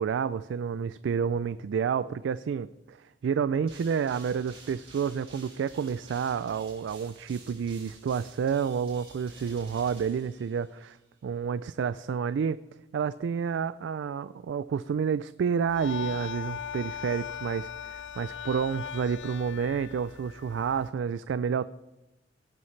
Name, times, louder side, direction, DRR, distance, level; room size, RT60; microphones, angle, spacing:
voice 1, 0.0-11.0 11.2-12.6 12.9-21.6, right 6 dB, 85° right, 15 dB, 0.3 m, -29 dB
sound 1, 3.7-10.9, right 3 dB, 35° right, 4.7 m, -51 dB
sound 2, 15.7-20.9, left 8 dB, 70° left, 0.5 m, -39 dB
17.5 x 9.7 x 3.2 m, 0.99 s
head